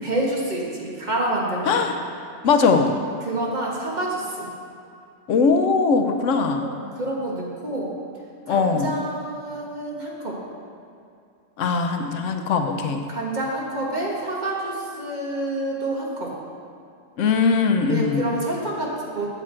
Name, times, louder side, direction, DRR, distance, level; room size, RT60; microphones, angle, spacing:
voice 1, 0.0-1.8 3.2-4.5 6.6-7.9 8.5-10.4 12.8-16.3 17.9-19.3, right 1 dB, 35° right, -4 dB, 1.4 m, -28 dB
voice 2, 1.7-2.0 2.4-3.0 5.3-6.7 8.5-9.0 11.6-13.0 17.2-18.3, left 4 dB, 80° left, 5 dB, 1.0 m, -20 dB
8.2 x 7.4 x 4.4 m, 2.5 s
omnidirectional pair, 1.3 m